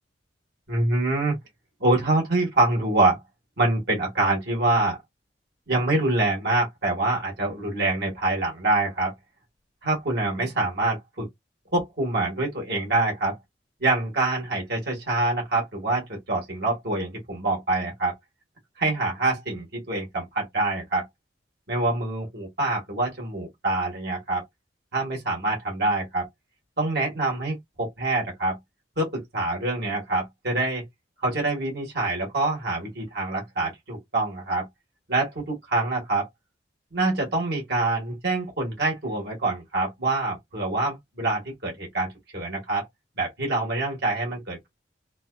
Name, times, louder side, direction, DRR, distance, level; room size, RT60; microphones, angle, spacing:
voice 1, 0.7-1.4 1.8-3.2 3.6-5.0 5.7-9.1 9.8-11.3 11.7-13.4 13.8-18.2 18.8-21.1 21.7-24.4 24.9-26.3 26.8-28.6 29.0-30.8 31.2-34.7 35.1-36.3 36.9-42.9 43.2-44.7, right 2 dB, 65° right, 1.7 m, -25 dB
3.9 x 2.5 x 2.3 m
head